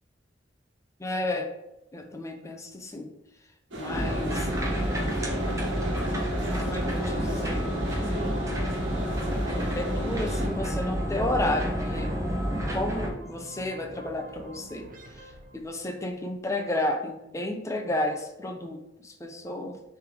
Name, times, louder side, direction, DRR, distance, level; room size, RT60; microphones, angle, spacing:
voice 1, 1.0-1.5 1.9-3.1 3.7-5.1 6.6-8.3 9.3-12.1 12.7-14.9 15.2-19.8, left 1 dB, 15° left, 4 dB, 0.7 m, -32 dB
sound 1, 3.7-10.5, right 1 dB, 80° right, 1.4 m, -35 dB
sound 2, 3.9-13.1, equal, 15° right, 0.9 m, -29 dB
sound 3, 10.1-16.2, equal, 50° right, 0.8 m, -47 dB
6.5 x 3.5 x 4.8 m, 0.89 s
head